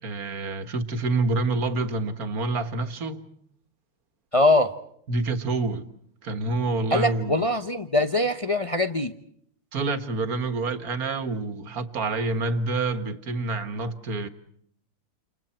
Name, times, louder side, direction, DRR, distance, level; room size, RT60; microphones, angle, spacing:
voice 1, 0.0-3.3 5.1-5.9 6.2-7.4 9.7-14.3, right 3 dB, 45° right, 1.9 m, -27 dB
voice 2, 4.3-4.7 6.9-9.1, left 1 dB, 50° left, 0.4 m, -22 dB
29.5 x 29.5 x 4.5 m
omnidirectional pair, 2.4 m